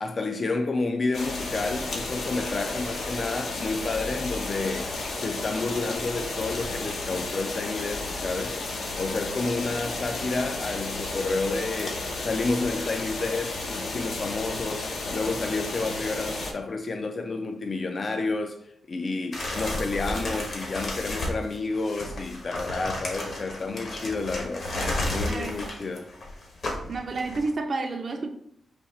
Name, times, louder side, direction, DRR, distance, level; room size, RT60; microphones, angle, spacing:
voice 1, 0.0-8.6 9.0-24.7 25.1-26.1, left 3 dB, 40° left, 0.3 m, -30 dB
sound 1, 1.1-16.5, left 2 dB, 75° left, 0.7 m, -33 dB
sound 2, 19.3-27.5, left 1 dB, 60° left, 1.2 m, -32 dB
voice 2, 26.9-28.3, right 3 dB, 45° right, 0.4 m, -30 dB
4.2 x 2.8 x 4.2 m
wide cardioid pair, 120°, 0 cm